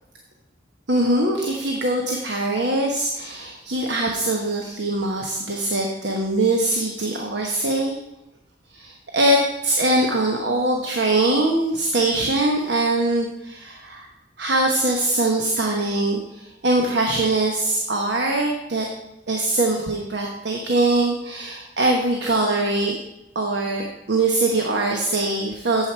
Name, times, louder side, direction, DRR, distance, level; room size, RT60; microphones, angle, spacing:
voice 1, 0.9-8.0 8.7-14.1 14.4-18.9 19.3-23.0 23.3-25.9, right 2 dB, 70° right, 1 dB, 1.1 m, -22 dB
9.2 x 7.7 x 4.5 m, 0.89 s
head